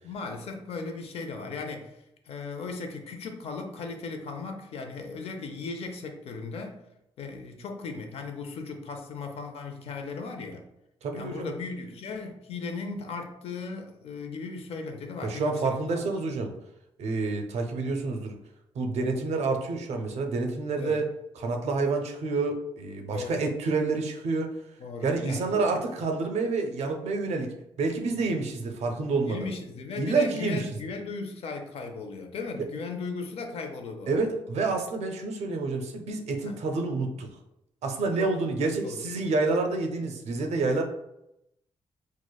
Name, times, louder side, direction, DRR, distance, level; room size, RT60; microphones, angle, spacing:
voice 1, 0.0-2.0 2.3-6.8 7.2-10.7 11.1-16.0 20.8-21.0 23.1-23.4 24.8-25.8 28.1-28.3 29.2-34.3 36.4-36.6 38.2-38.3 38.6-39.2, left 4 dB, 65° left, 5 dB, 0.5 m, -37 dB
voice 2, 11.0-11.5 15.2-16.5 17.0-18.4 18.8-24.5 25.0-29.5 30.0-30.7 34.1-37.3 37.8-40.8, right 3 dB, 90° right, 4 dB, 0.5 m, -28 dB
4.7 x 2.1 x 2.3 m, 0.84 s
wide cardioid pair, 180°, 11 cm